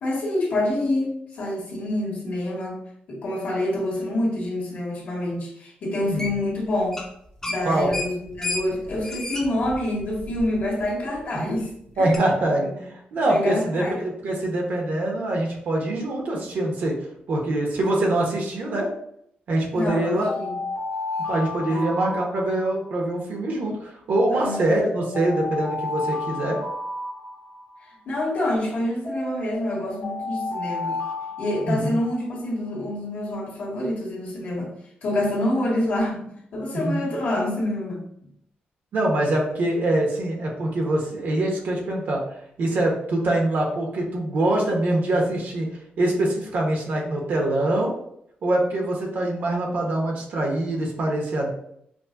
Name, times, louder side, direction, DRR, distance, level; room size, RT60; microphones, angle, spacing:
voice 1, 0.0-2.8 3.1-7.0 7.5-11.7 11.9-12.1 12.6-12.7 13.2-14.0 19.7-20.6 21.7-22.3 24.3-24.6 28.0-31.0 31.4-34.7 35.0-38.0, left 1 dB, 60° left, -5 dB, 1.5 m, -27 dB
sound 1, 6.2-6.6 6.8-7.1 7.4-10.8 11.2-11.3 12.1-12.2, left 2 dB, 15° left, 0.6 m, -32 dB
voice 2, 12.0-16.9 17.3-18.9 19.5-20.3 21.3-26.6 31.7-32.0 36.7-37.1 38.9-42.2 42.6-45.7 46.0-47.9 48.4-51.5, right 1 dB, 65° right, -1 dB, 0.9 m, -24 dB
sound 2, 19.9-23.0 24.2-27.9 29.0-32.3, left 2 dB, 85° left, 1.3 m, -32 dB
5.0 x 2.1 x 2.5 m, 0.71 s
wide cardioid pair, 150°, 3 cm